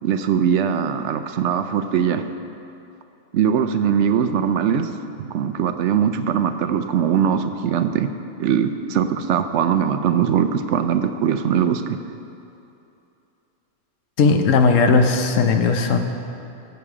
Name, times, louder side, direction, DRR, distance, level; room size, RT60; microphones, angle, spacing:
voice 1, 0.0-2.2 3.3-4.9 5.2-8.1 8.4-12.0, right 8 dB, 70° right, 9 dB, 0.9 m, -21 dB
voice 2, 14.2-16.0, left 4 dB, 85° left, 6 dB, 1.2 m, -17 dB
13.5 x 7.1 x 4.8 m, 2.8 s
omnidirectional pair, 1.3 m